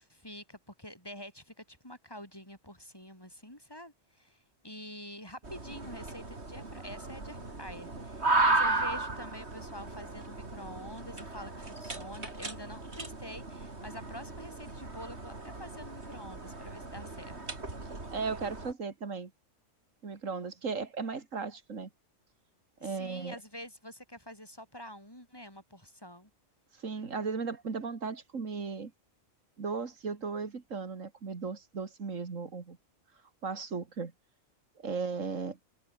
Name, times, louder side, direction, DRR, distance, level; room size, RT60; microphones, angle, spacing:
voice 1, 0.0-17.4 22.8-26.3, equal, 20° left, 5.2 m, -47 dB
sound 1, 5.4-18.7, right 2 dB, 55° right, 3.9 m, -35 dB
voice 2, 18.1-19.3 20.0-21.9 22.8-23.4 26.7-28.9 29.6-32.8 33.4-34.1 34.8-35.6, right 5 dB, 85° right, 2.5 m, -36 dB
omnidirectional pair, 1.3 m